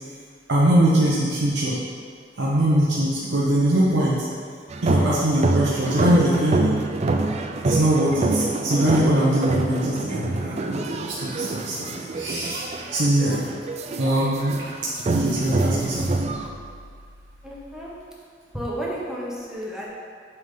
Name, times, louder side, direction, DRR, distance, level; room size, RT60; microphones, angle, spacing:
voice 1, 0.5-1.8 2.4-4.3 4.8-6.8 7.6-13.4 14.0-14.6 15.0-16.3, right 1 dB, 75° right, -6 dB, 0.9 m, -22 dB
sound 1, 4.7-16.5, right 2 dB, 40° right, 0.4 m, -26 dB
voice 2, 17.4-17.9 18.5-19.9, equal, 5° right, -5 dB, 1.0 m, -32 dB
8.1 x 3.6 x 3.8 m, 2.1 s
head